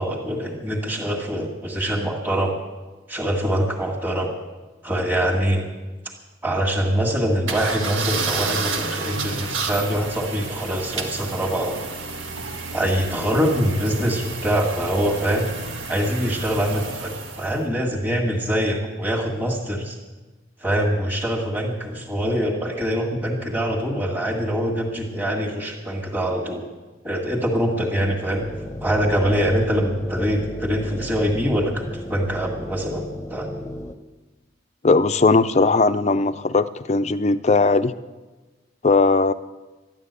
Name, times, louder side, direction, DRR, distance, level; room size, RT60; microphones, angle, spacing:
voice 1, 0.0-2.6 3.1-4.3 4.8-5.7 6.4-11.8 12.7-15.5 15.9-20.0 20.6-26.7 27.0-28.5 28.8-33.0 33.3-33.5, equal, 10° right, -2 dB, 1.7 m, -24 dB
sound 1, 7.5-17.6, right 4 dB, 85° right, 1.6 m, -31 dB
sound 2, 28.3-33.9, left 1 dB, 15° left, 0.8 m, -34 dB
voice 2, 34.8-37.9 38.8-39.3, left 3 dB, 35° left, 12 dB, 0.4 m, -18 dB
13.0 x 11.0 x 8.2 m, 1.2 s
head